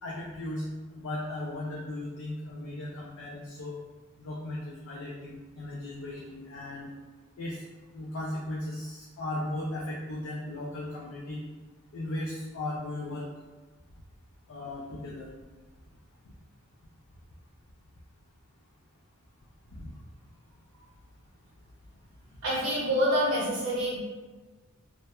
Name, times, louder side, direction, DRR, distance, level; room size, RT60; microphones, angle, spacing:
voice 1, 0.0-3.8 4.2-6.9 7.4-7.6 7.9-11.4 11.9-13.3 14.5-15.3 19.7-19.9, left 1 dB, 65° left, -4 dB, 0.4 m, -36 dB
voice 2, 22.4-24.0, equal, 90° right, -8 dB, 0.7 m, -26 dB
2.9 x 2.0 x 2.2 m, 1.2 s
head